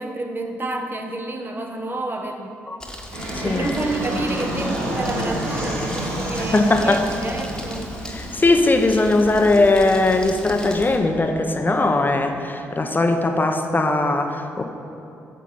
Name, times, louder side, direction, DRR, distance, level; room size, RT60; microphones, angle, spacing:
voice 1, 0.0-2.6 3.4-7.9, right 2 dB, 30° right, 4 dB, 1.2 m, -29 dB
Crumpling crinkling, 2.8-11.0, equal, 10° left, 1.5 m, -38 dB
Fixed-wing aircraft airplane, 3.1-12.1, right 1 dB, 85° right, 1.6 m, -30 dB
voice 2, 3.3-3.7 6.5-7.0 8.1-14.6, left 2 dB, 25° left, 5 dB, 0.9 m, -19 dB
10.5 x 7.2 x 4.2 m, 2.9 s
hypercardioid pair, 45°, 7 cm